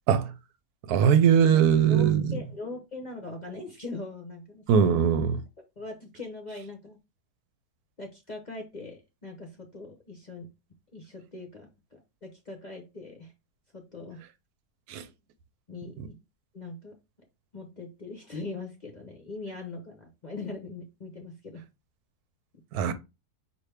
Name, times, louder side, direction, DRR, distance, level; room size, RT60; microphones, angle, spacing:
voice 1, 0.9-2.3 4.7-5.4 14.9-15.0 22.7-22.9, right 8 dB, 80° right, 1.1 m, -21 dB
voice 2, 1.5-4.9 5.8-7.0 8.0-10.5 10.9-13.3 13.7-14.2 15.7-16.2 16.5-16.9 17.5-21.6, left 3 dB, 40° left, 0.7 m, -41 dB
5.9 x 2.6 x 3.3 m
omnidirectional pair, 1.7 m